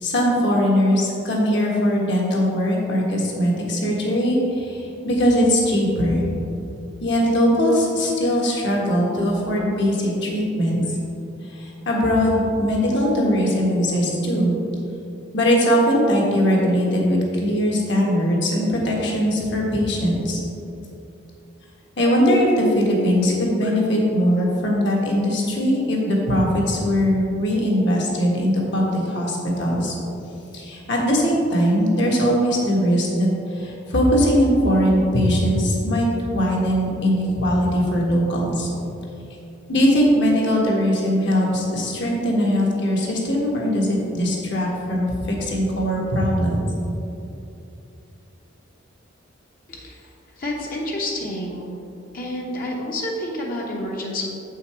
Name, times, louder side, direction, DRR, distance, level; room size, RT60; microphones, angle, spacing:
voice 1, 0.0-6.2 7.0-10.8 11.5-14.5 15.3-20.4 22.0-29.9 30.5-36.1 36.3-38.7 39.7-46.6, equal, 60° left, -2 dB, 1.6 m, -20 dB
voice 2, 49.7-50.1 50.4-51.8 52.1-54.3, left 1 dB, 45° left, -2 dB, 1.0 m, -29 dB
7.6 x 5.7 x 4.4 m, 2.7 s
head